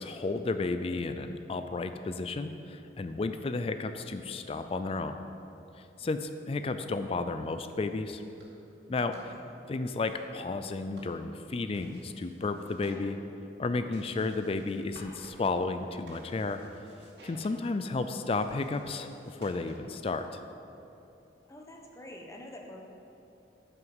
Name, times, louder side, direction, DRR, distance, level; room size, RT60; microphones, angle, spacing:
voice 1, 0.0-5.2 6.0-8.2 8.9-9.3 9.7-13.2 13.6-16.6 17.2-20.3, left 3 dB, 35° left, 9 dB, 0.4 m, -32 dB
sound 1, 8.1-20.1, right 1 dB, 75° right, 2.4 m, -56 dB
voice 2, 21.5-22.8, left 1 dB, 15° left, 0 dB, 1.1 m, -46 dB
9.4 x 5.9 x 7.1 m, 2.9 s
head